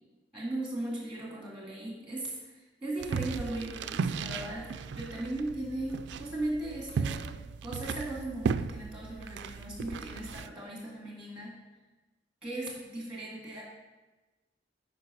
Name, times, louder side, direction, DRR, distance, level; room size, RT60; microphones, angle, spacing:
voice 1, 0.3-4.7 5.0-11.6 12.4-13.6, right 1 dB, 5° right, -3 dB, 1.8 m, -37 dB
sound 1, 3.0-10.5, right 5 dB, 75° right, 0.3 m, -36 dB
9.2 x 5.4 x 4.8 m, 1.1 s
head